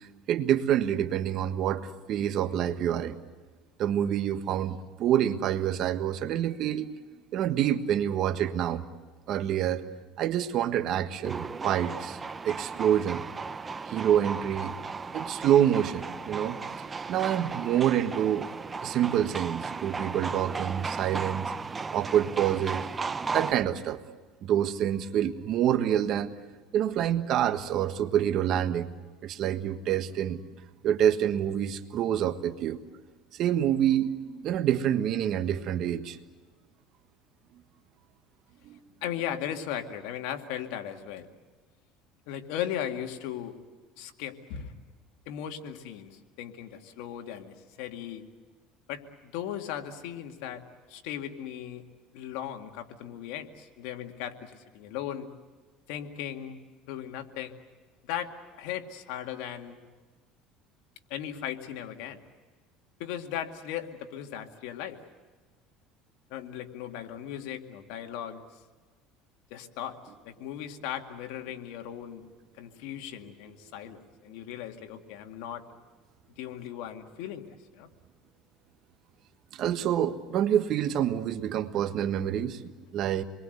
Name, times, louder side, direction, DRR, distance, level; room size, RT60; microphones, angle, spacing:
voice 1, 0.0-3.2 3.8-6.9 7.3-8.8 9.3-9.8 10.2-12.2 12.4-13.2 13.9-14.8 15.1-18.5 18.8-21.5 21.9-22.9 23.3-24.0 24.4-26.4 26.7-28.9 29.2-30.4 30.8-32.8 33.3-36.2 38.6-38.8 79.5-83.2, right 10 dB, 50° right, 10 dB, 1.5 m, -27 dB
sound 1, 11.2-23.5, right 4 dB, 20° right, 0.8 m, -35 dB
voice 2, 39.0-41.3 42.3-43.6 44.0-44.7 45.3-48.3 48.9-49.0 49.3-50.6 50.9-51.8 52.1-55.3 55.9-56.6 56.9-57.6 58.1-58.3 58.6-59.8 61.1-62.2 63.0-65.0 66.3-68.4 69.5-70.0 70.2-72.3 72.6-75.6 76.4-77.5 77.7-77.9, left 10 dB, 75° left, 5 dB, 2.2 m, -37 dB
27.5 x 22.5 x 8.0 m, 1.4 s
cardioid pair, 130°, 0 cm